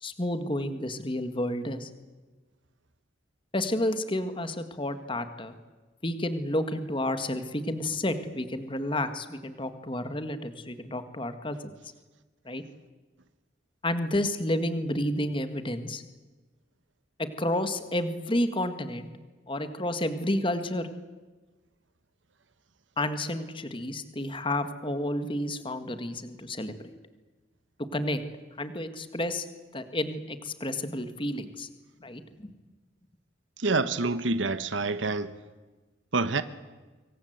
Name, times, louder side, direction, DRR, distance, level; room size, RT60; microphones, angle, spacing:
voice 1, 0.0-1.9 3.5-5.5 6.0-11.7 12.5-12.6 13.8-16.0 17.2-19.1 19.5-20.9 23.0-26.7 27.9-28.2 28.6-29.5 29.7-31.7 32.0-32.5, left 1 dB, 25° left, 1.7 m, -30 dB
voice 2, 33.6-35.3 36.1-36.4, right 3 dB, 90° right, 1.2 m, -27 dB
26.0 x 23.5 x 8.1 m
head